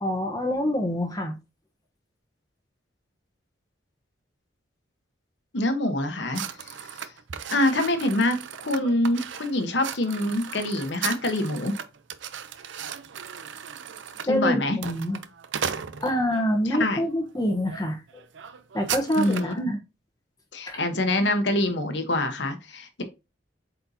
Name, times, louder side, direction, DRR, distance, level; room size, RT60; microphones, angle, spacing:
voice 1, 0.0-1.3 14.3-15.2 16.0-18.2 18.7-19.8 20.7-20.8, equal, 20° left, 1.0 m, -26 dB
voice 2, 5.5-7.1 7.5-8.4 8.6-11.7 14.2-14.8 16.7-17.0 19.1-19.7 20.5-23.0, left 1 dB, 65° left, 1.1 m, -25 dB
sound 1, 6.3-16.5 17.1-17.3 17.7-17.8 18.1-19.6, right 8 dB, 70° right, 0.6 m, -36 dB
8.0 x 4.3 x 2.8 m
head